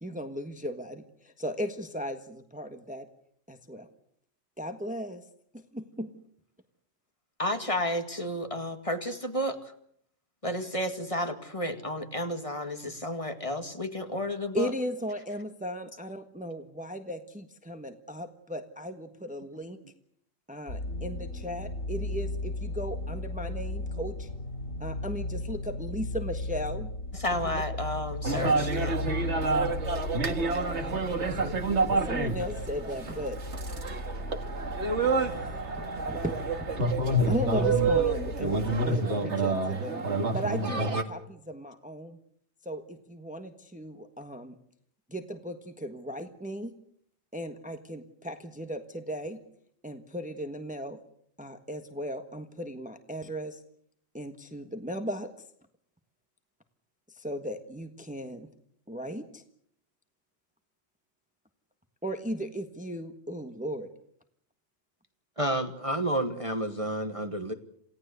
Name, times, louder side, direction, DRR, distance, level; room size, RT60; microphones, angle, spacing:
voice 1, 0.0-3.1 3.5-3.9 4.6-5.3 5.5-6.1 14.5-19.8 20.5-24.3 24.8-26.9 27.4-27.6 30.8-31.6 31.9-33.4 35.2-36.4 36.8-36.9 37.2-42.2 42.6-44.5 45.1-46.7 47.3-49.4 49.8-51.0 51.4-53.6 54.1-55.3 57.1-58.5 58.9-59.4 62.0-63.9, equal, 5° right, 7 dB, 1.4 m, -36 dB
voice 2, 7.4-9.6 10.4-14.7 27.2-29.0, left 1 dB, 25° left, 7 dB, 2.1 m, -32 dB
sound 1, 20.7-38.9, left 1 dB, 85° left, 7.1 m, -36 dB
sound 2, 28.2-41.0, right 3 dB, 60° right, 2.1 m, -28 dB
voice 3, 65.4-67.5, right 1 dB, 25° right, 7 dB, 1.3 m, -30 dB
28.0 x 17.5 x 8.2 m, 0.68 s
omnidirectional pair, 1.3 m